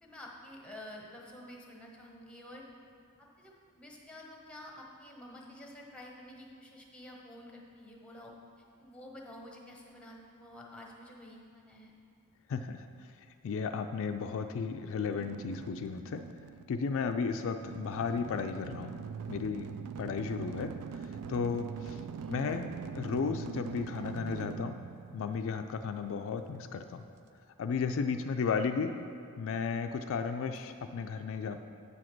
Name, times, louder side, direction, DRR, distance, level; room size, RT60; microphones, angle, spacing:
voice 1, 0.0-2.6 3.2-8.3 8.8-11.9 22.2-22.4 30.4-30.6, left 1 dB, 5° left, -1 dB, 1.0 m, -50 dB
voice 2, 12.5-16.2 16.7-18.9 19.3-19.7 20.0-22.0 22.3-24.8 25.1-27.0 27.6-29.0 29.4-31.6, left 5 dB, 65° left, 7 dB, 0.4 m, -34 dB
sound 1, 15.0-26.0, right 6 dB, 90° right, 0.3 m, -43 dB
8.5 x 4.9 x 6.0 m, 2.5 s
head